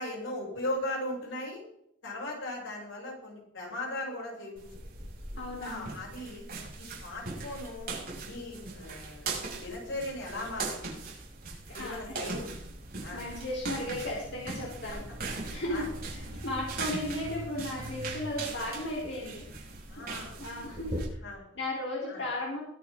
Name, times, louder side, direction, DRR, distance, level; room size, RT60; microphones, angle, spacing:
voice 1, 0.0-1.6 2.0-4.7 5.6-6.5 6.7-7.9 8.2-9.3 9.6-11.0 11.7-12.5 13.0-13.2 15.7-15.9 16.7-16.9 19.9-20.5 21.2-21.4 22.1-22.2, left 1 dB, 85° left, -3 dB, 7.0 m, -38 dB
sound 1, 4.6-21.1, right 3 dB, 50° right, 6.1 m, -40 dB
voice 2, 5.4-5.9 11.7-12.2 13.1-19.4 20.0-20.1 20.4-21.0 21.6-22.6, left 1 dB, 65° left, -3 dB, 3.7 m, -35 dB
22.0 x 10.0 x 3.7 m, 0.74 s
head